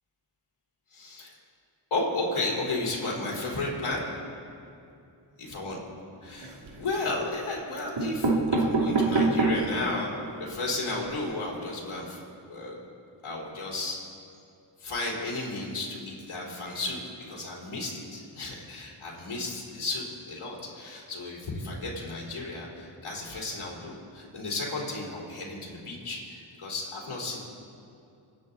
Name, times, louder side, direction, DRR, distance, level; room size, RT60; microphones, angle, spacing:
voice 1, 0.9-1.3 1.9-4.1 5.4-5.8 6.2-12.2 12.5-12.8 13.2-14.0 14.8-27.4, left 2 dB, 80° left, -4 dB, 4.2 m, -33 dB
sound 1, 6.2-6.8 7.6-7.7 8.0-9.8 10.3-10.4 10.5-10.6 10.9-11.1, right 3 dB, 65° right, 2.8 m, -25 dB
28.5 x 10.0 x 4.1 m, 2.6 s
cardioid pair, 40°, 49 cm